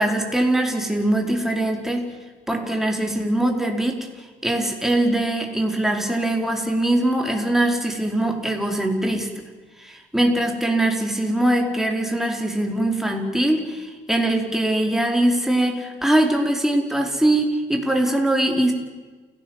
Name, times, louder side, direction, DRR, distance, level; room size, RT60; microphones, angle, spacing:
voice 1, 0.0-2.1 2.5-4.1 4.4-9.3 9.8-18.7, right 1 dB, ahead, 2 dB, 4.9 m, -22 dB
29.5 x 17.5 x 7.6 m, 1.3 s
cardioid pair, 90°, 20 cm